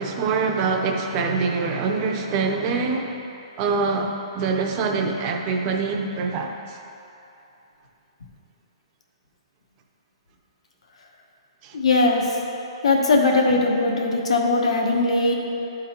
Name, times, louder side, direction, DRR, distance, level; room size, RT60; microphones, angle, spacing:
voice 1, 0.0-3.2 3.6-6.8 11.6-11.8, right 4 dB, 25° right, 2 dB, 0.6 m, -24 dB
voice 2, 11.7-12.4 12.8-15.3, left 3 dB, 85° left, 0 dB, 1.1 m, -20 dB
11.0 x 3.8 x 4.4 m, 2.9 s
hypercardioid pair, 165°, 3 cm